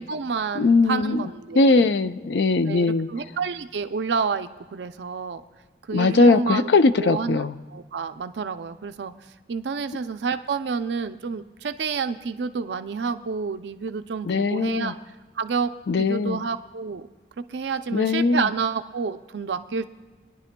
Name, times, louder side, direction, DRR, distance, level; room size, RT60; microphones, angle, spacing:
voice 1, 0.0-1.9 2.7-5.4 5.8-6.7 7.0-9.1 9.5-14.9 15.3-15.7 16.0-17.1 17.4-19.8, right 5 dB, 85° right, 9 dB, 0.5 m, -29 dB
voice 2, 0.6-1.2 1.6-3.1 5.9-7.5 14.2-14.9 15.9-16.4 17.9-18.5, left 3 dB, 80° left, 11 dB, 0.5 m, -20 dB
22.0 x 10.5 x 2.2 m, 1.3 s
head